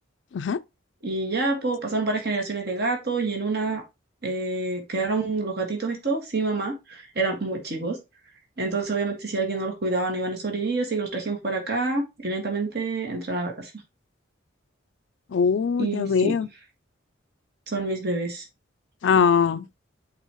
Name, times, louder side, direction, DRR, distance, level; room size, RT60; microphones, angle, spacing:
voice 1, 1.0-3.8 4.2-8.0 8.6-13.7 15.8-16.3 17.7-18.4, right 3 dB, 55° right, 1.7 m, -27 dB
voice 2, 15.3-16.5 19.0-19.7, left 6 dB, 65° left, 0.4 m, -21 dB
8.2 x 4.1 x 3.0 m
head